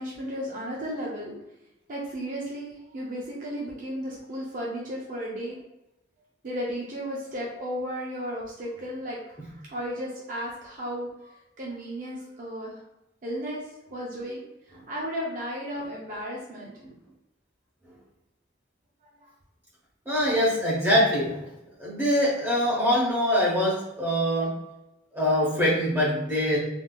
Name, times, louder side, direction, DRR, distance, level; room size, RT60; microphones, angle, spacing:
voice 1, 0.0-1.3 1.9-5.6 6.4-12.8 13.2-13.6 13.9-16.7 19.0-19.3, equal, 45° right, -4 dB, 0.6 m, -34 dB
voice 2, 20.1-21.4 21.8-24.5 25.1-26.6, equal, 10° right, -6 dB, 0.9 m, -23 dB
3.5 x 2.7 x 2.3 m, 0.91 s
head